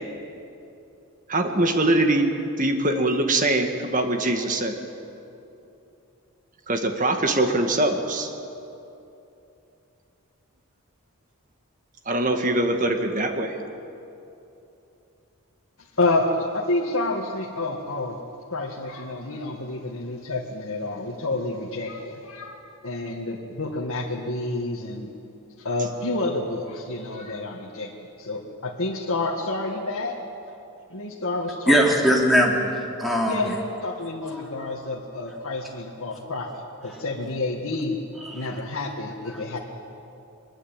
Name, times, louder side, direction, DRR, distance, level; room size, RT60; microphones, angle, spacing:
voice 1, 1.3-2.3 2.6-4.8 6.7-8.3 12.1-13.6, right 2 dB, 35° right, 5 dB, 1.9 m, -22 dB
voice 2, 16.0-18.2 18.5-25.1 25.6-27.9 28.2-30.2 30.9-31.9 33.3-38.0 38.3-39.6, left 2 dB, 70° left, -2 dB, 1.9 m, -29 dB
voice 3, 31.7-33.5 34.3-34.4 38.2-38.5, equal, ahead, -2 dB, 3.2 m, -21 dB
22.5 x 21.5 x 9.0 m, 2.9 s
head